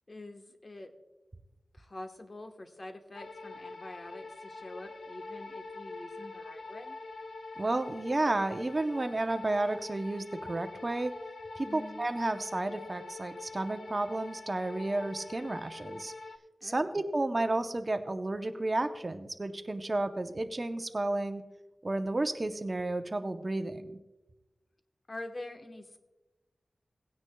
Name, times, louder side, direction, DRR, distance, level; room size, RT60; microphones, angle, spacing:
voice 1, 0.1-0.9 1.7-6.9 11.6-12.1 16.6-16.9 25.1-26.0, left 2 dB, 40° left, 5 dB, 1.2 m, -45 dB
sound 1, 3.1-16.4, left 3 dB, 70° left, 0.5 m, -44 dB
voice 2, 7.6-11.1 11.6-16.1 16.6-21.4 21.8-24.0, right 2 dB, 35° right, 8 dB, 0.7 m, -32 dB
18.5 x 9.5 x 2.3 m, 1.1 s
wide cardioid pair, 65°, 0 cm